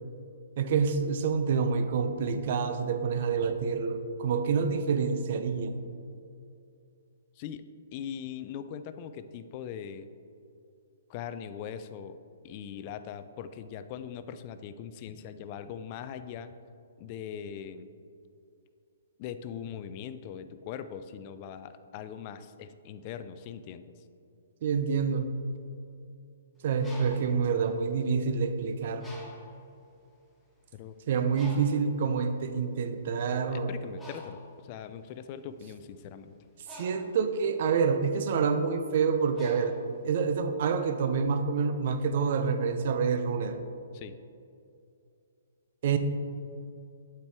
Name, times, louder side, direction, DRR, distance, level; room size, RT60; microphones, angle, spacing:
voice 1, 0.6-5.7 24.6-25.4 26.6-29.1 31.1-33.7 36.7-39.8 40.0-43.6 45.8-46.0, right 5 dB, 55° right, 9 dB, 0.5 m, -27 dB
voice 2, 7.4-10.1 11.1-12.2 12.4-16.5 17.0-17.9 19.2-23.8 30.7-30.9 33.5-36.4 43.9-44.2, left 8 dB, 40° left, 11 dB, 0.3 m, -41 dB
Bird, 26.6-28.5 29.0-29.7 30.4-30.5 30.8-40.5, left 1 dB, 10° left, 0.8 m, -50 dB
8.0 x 4.5 x 3.4 m, 2.5 s
hypercardioid pair, 135°, 0 cm